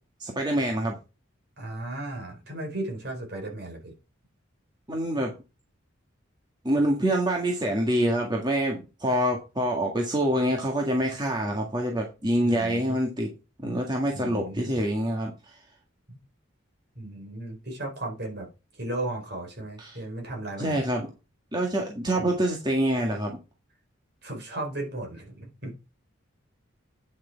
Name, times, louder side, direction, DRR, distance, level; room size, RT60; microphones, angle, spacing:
voice 1, 0.2-1.0 4.9-5.3 6.6-13.3 13.6-15.3 19.8-20.0 20.6-21.1 21.5-23.4, right 1 dB, 20° right, 1.8 m, -26 dB
voice 2, 1.6-3.9 12.4-13.0 14.1-14.7 16.1-16.2 17.0-18.5 18.8-20.8 24.2-25.7, right 2 dB, 50° right, 4.4 m, -35 dB
9.6 x 6.1 x 4.6 m
head